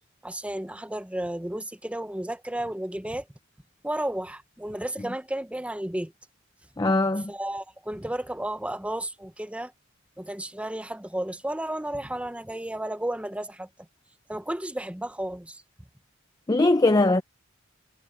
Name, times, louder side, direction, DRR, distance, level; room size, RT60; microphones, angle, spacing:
voice 1, 0.2-3.2 3.8-6.1 7.3-9.7 10.2-13.7 14.3-15.6, right 1 dB, 5° right, 0.8 m, -33 dB
voice 2, 6.8-7.3 16.5-17.2, left 2 dB, 20° left, 0.5 m, -21 dB
head